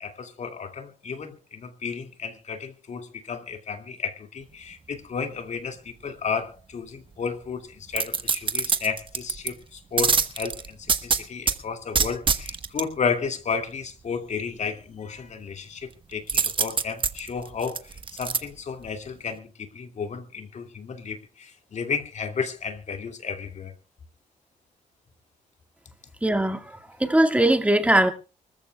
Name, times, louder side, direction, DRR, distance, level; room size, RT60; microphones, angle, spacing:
voice 1, 0.0-23.7, left 5 dB, 55° left, 2.4 m, -33 dB
sound 1, 7.9-9.5 10.0-11.6 11.9-12.8 16.3-18.4 18.8-18.9, right 5 dB, 35° right, 1.3 m, -24 dB
voice 2, 26.2-28.1, right 1 dB, 10° right, 2.0 m, -21 dB
25.0 x 14.5 x 2.3 m
cardioid pair, 95°, 14 cm